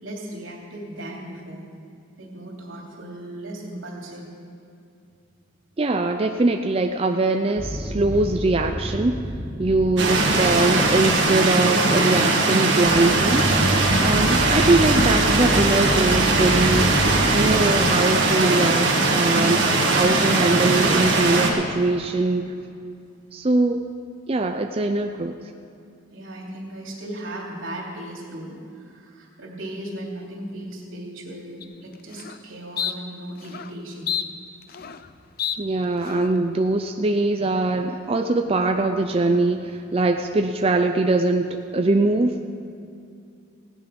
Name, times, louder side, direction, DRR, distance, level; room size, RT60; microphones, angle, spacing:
voice 1, 0.0-1.6 2.2-4.3 8.1-8.2 9.8-9.9 26.1-34.1 40.6-40.7, right 1 dB, 80° right, -2 dB, 2.9 m, -37 dB
voice 2, 5.8-9.2 9.6-13.5 14.0-17.0 17.3-22.5 23.3-23.8 24.3-25.3 35.6-42.4, right 2 dB, 30° right, 4 dB, 0.5 m, -22 dB
sound 1, 7.6-11.8 12.8-17.7, equal, ahead, 1.1 m, -29 dB
sound 2, 10.0-21.5, right 2 dB, 60° right, 1.9 m, -20 dB
sound 3, 31.6-31.7 32.1-32.4 32.8-32.9 33.4-33.7 34.1-35.1 35.4-35.6 36.0-36.4, left 9 dB, 50° left, 0.5 m, -29 dB
16.5 x 10.0 x 5.3 m, 2.5 s
head